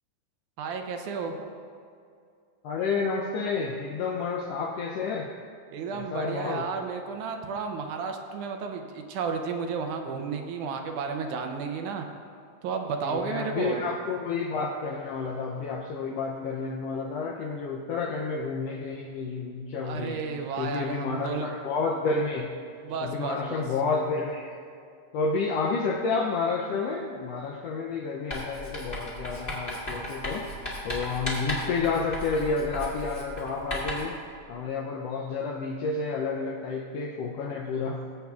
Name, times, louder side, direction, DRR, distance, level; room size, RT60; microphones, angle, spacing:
voice 1, 0.6-1.5 5.7-12.1 12.6-13.8 19.8-21.5 22.8-23.6, right 5 dB, 80° right, 4 dB, 2.2 m, -32 dB
voice 2, 2.6-5.3 5.9-6.7 13.0-20.3 20.6-22.5 23.0-24.6 25.1-30.5 30.8-34.2 34.5-38.0, left 4 dB, 85° left, 0 dB, 1.4 m, -30 dB
Writing, 28.3-34.2, equal, 20° left, 2.0 m, -35 dB
18.5 x 8.2 x 2.4 m, 2.3 s
omnidirectional pair, 3.5 m